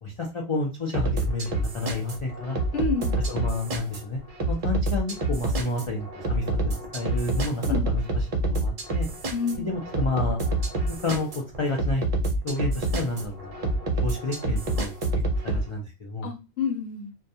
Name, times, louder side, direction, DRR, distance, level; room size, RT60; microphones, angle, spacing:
voice 1, 0.0-2.6 3.3-4.2 4.5-8.2 8.5-9.1 9.6-10.4 10.8-12.0 12.4-15.0 15.4-16.3, left 2 dB, 55° left, -1 dB, 0.3 m, -30 dB
sound 1, 0.9-15.6, right 2 dB, 55° right, 0.4 m, -27 dB
voice 2, 2.7-3.2 7.7-7.9 9.3-9.8 16.2-17.1, left 5 dB, 75° left, 2 dB, 1.0 m, -28 dB
2.2 x 2.2 x 2.7 m, 0.28 s
omnidirectional pair, 1.2 m